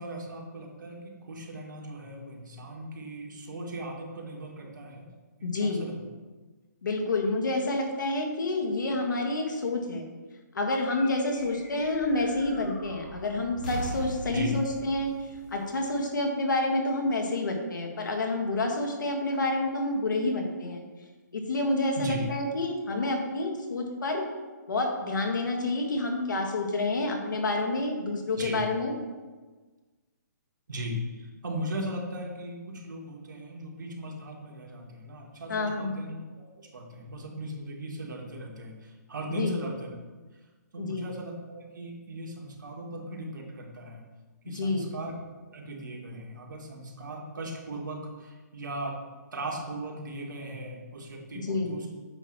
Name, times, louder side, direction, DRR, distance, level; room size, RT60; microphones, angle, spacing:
voice 1, 0.0-5.1 5.4-6.0 14.3-14.6 22.0-22.3 28.3-28.6 30.7-40.0 40.7-44.0 44.4-45.2 45.5-49.0 49.3-51.9, right 1 dB, 85° right, -1 dB, 1.8 m, -38 dB
voice 2, 5.4-5.8 6.8-10.0 10.5-15.1 15.5-20.8 21.3-24.2 24.7-28.9 35.5-36.0 39.3-39.5 40.8-41.1 44.5-44.9 51.3-51.7, left 2 dB, 85° left, 2 dB, 1.7 m, -28 dB
sound 1, 10.9-16.6, right 1 dB, 25° left, 1.5 m, -42 dB
8.8 x 3.1 x 6.0 m, 1.3 s
hypercardioid pair, 180°, 10 cm